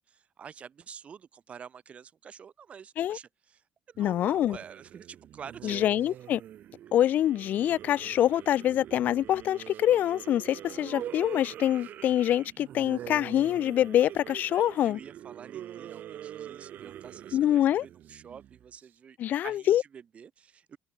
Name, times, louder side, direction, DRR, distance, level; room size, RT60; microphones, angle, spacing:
voice 1, 0.4-3.6 3.9-5.8 14.8-19.2 19.4-20.8, right 7 dB, 35° right, 3.8 m, -47 dB
voice 2, 4.0-4.6 5.6-6.4 6.9-15.0 17.3-17.8 19.2-19.8, left 11 dB, 55° left, 0.5 m, -25 dB
sound 1, 4.0-18.9, right 11 dB, 55° right, 3.7 m, -44 dB
cardioid pair, 130°, 4 cm